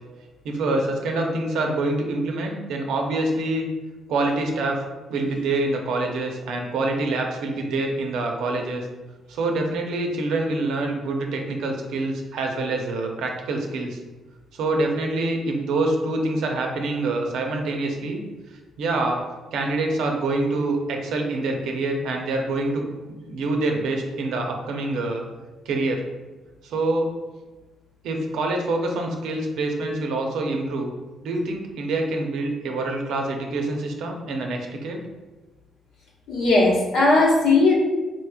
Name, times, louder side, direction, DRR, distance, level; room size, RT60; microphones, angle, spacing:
voice 1, 0.4-3.7 4.1-4.8 5.1-8.9 9.3-14.0 14.5-18.2 18.8-19.2 19.5-22.9 23.3-25.3 25.7-26.0 26.6-27.1 28.0-30.9 31.2-35.0, right 2 dB, 80° right, 2 dB, 0.6 m, -26 dB
voice 2, 36.3-37.7, left 2 dB, 90° left, -5 dB, 1.1 m, -17 dB
4.2 x 3.1 x 2.3 m, 1.2 s
cardioid pair, 90°, 0 cm